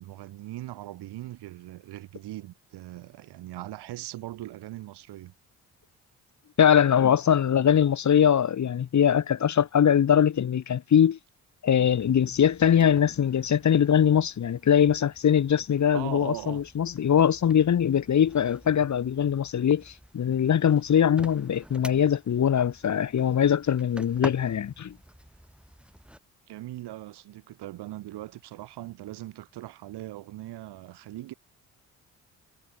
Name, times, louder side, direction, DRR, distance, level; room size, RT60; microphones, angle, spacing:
voice 1, 0.0-5.3 15.9-16.6 26.5-31.3, right 15 dB, 70° right, 1.7 m, -40 dB
voice 2, 6.6-11.2 11.6-25.0, left 8 dB, 45° left, 1.1 m, -22 dB
sound 1, 11.8-26.2, equal, 5° right, 5.5 m, -47 dB
hypercardioid pair, 50°, 41 cm